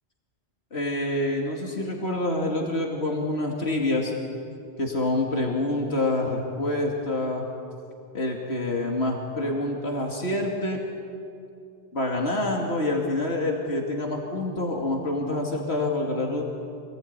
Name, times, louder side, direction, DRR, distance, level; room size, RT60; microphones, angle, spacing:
voice 1, 0.7-4.1 4.8-7.5 8.1-10.8 11.9-16.4, left 2 dB, 80° left, -1 dB, 2.8 m, -27 dB
27.5 x 19.5 x 9.7 m, 2.6 s
omnidirectional pair, 1.1 m